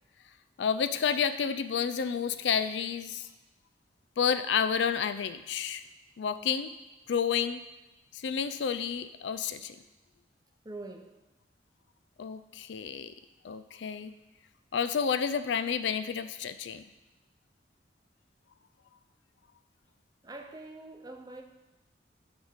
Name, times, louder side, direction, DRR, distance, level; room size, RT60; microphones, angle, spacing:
voice 1, 0.6-3.3 4.2-5.8 6.2-6.7 7.1-7.6 8.1-9.8 12.2-13.1 13.4-14.1 14.7-16.8, left 7 dB, 75° left, 11 dB, 0.4 m, -30 dB
voice 2, 10.6-11.2 20.2-21.4, right 2 dB, 20° right, 4 dB, 0.6 m, -44 dB
8.8 x 3.5 x 6.4 m, 1.1 s
head